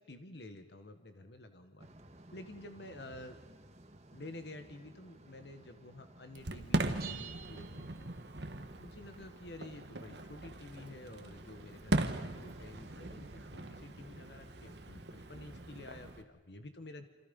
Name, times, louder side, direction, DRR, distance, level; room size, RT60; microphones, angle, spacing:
voice 1, 0.0-1.9 2.3-3.4 4.1-8.2 8.8-17.0, left 1 dB, 70° left, 8 dB, 1.6 m, -50 dB
sound 1, 1.8-16.2, right 1 dB, 40° right, 1.7 m, -56 dB
Fireworks, 6.3-16.2, right 2 dB, 75° right, 1.5 m, -39 dB
sound 2, 7.0-8.6, right 11 dB, 60° right, 2.9 m, -49 dB
27.5 x 27.0 x 5.5 m, 1.2 s
head